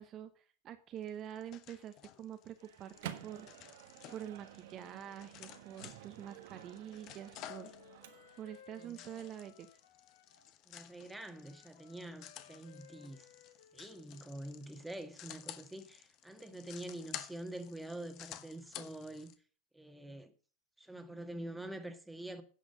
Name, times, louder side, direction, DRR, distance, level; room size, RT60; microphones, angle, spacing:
voice 1, 0.0-3.5 4.1-7.7 8.4-9.7, right 10 dB, 40° right, 1.1 m, -46 dB
sound 1, 1.0-19.3, left 12 dB, 50° left, 1.1 m, -52 dB
Microwave oven, 2.6-8.6, right 11 dB, 70° right, 1.3 m, -51 dB
Wind instrument woodwind instrument, 7.1-10.5 10.8-14.4, left 7 dB, 80° left, 2.0 m, -62 dB
voice 2, 10.7-13.3 13.7-19.3 19.7-20.3 20.8-22.4, right 1 dB, 5° right, 1.7 m, -46 dB
10.5 x 6.2 x 6.7 m
hypercardioid pair, 100°, 0 cm